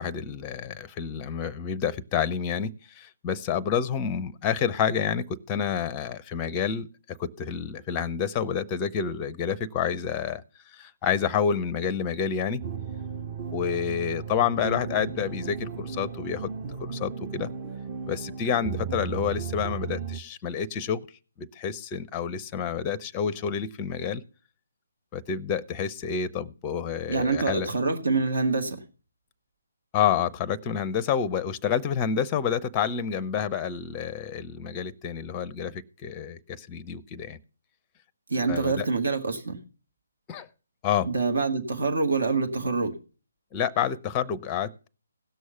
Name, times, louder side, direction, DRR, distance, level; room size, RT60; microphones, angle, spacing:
voice 1, 0.0-10.4 10.7-12.6 13.5-16.5 16.8-17.5 18.1-21.0 21.4-24.2 25.1-27.7 29.9-37.4 38.5-38.9 40.3-40.5 40.8-41.1 43.5-44.9, left 7 dB, 20° left, 19 dB, 0.6 m, -29 dB
sound 1, 12.6-20.2, right 6 dB, 25° right, 0.9 m, -35 dB
voice 2, 27.1-28.8 38.3-39.6 41.0-43.0, right 4 dB, 60° right, 6 dB, 1.9 m, -26 dB
16.5 x 6.3 x 5.7 m, 0.37 s
figure-of-eight pair, 140°, 0 cm